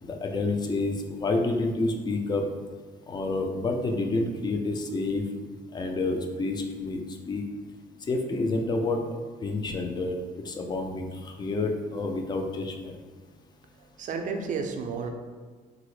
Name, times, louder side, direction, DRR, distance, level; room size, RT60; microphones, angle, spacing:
voice 1, 0.0-2.5 3.1-5.2 5.7-7.0 7.3-7.4 8.1-9.0 9.4-10.2 10.4-12.9, left 2 dB, 25° left, 3 dB, 0.4 m, -28 dB
voice 2, 13.8-15.1, right 5 dB, 50° right, 4 dB, 0.5 m, -32 dB
3.7 x 2.0 x 3.1 m, 1.5 s
cardioid pair, 110°, 17 cm